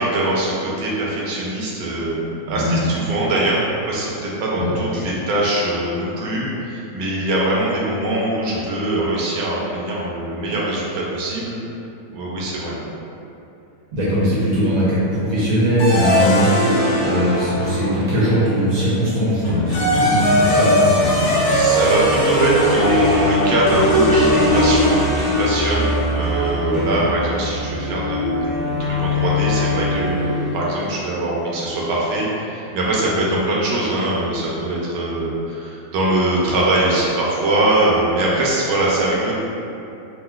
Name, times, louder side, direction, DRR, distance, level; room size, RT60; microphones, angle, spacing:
voice 1, 0.0-11.5 12.1-12.8 21.5-39.3, right 2 dB, 80° right, -5 dB, 1.4 m, -22 dB
voice 2, 2.5-2.9 4.6-4.7 13.9-21.3 26.6-26.8, equal, 60° right, -10 dB, 0.9 m, -20 dB
sound 1, 15.8-18.4 19.4-30.6, left 1 dB, 75° left, 1.5 m, -19 dB
3.9 x 2.1 x 2.3 m, 2.7 s
omnidirectional pair, 2.2 m